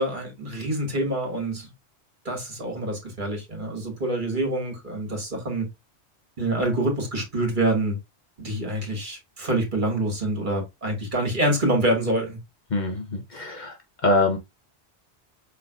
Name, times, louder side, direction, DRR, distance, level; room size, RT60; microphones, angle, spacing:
voice 1, 0.0-1.7 2.3-5.7 6.4-8.0 8.4-12.4, right 1 dB, 45° right, 2.1 m, -26 dB
voice 2, 12.7-13.8 14.0-14.4, left 2 dB, 45° left, 0.9 m, -24 dB
5.4 x 3.8 x 2.4 m
omnidirectional pair, 1.1 m